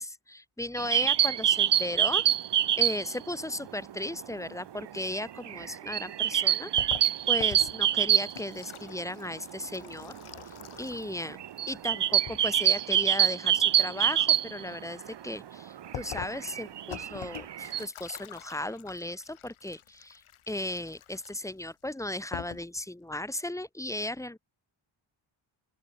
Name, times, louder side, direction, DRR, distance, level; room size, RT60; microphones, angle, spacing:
voice 1, 0.0-2.3 2.8-6.7 7.3-10.2 10.8-11.4 11.7-24.4, left 1 dB, 5° left, 2.0 m, -36 dB
sound 1, 0.8-3.2 3.5-3.6 3.9-8.8 9.1-9.2 9.4-9.6 10.1-15.2 15.6-17.9, right 10 dB, 60° right, 0.9 m, -26 dB
sound 2, 6.8-11.2 11.5-12.4 15.9-21.6 22.1-22.2 22.3-22.8, left 10 dB, 85° left, 1.6 m, -45 dB
open air
wide cardioid pair, 160°, 48 cm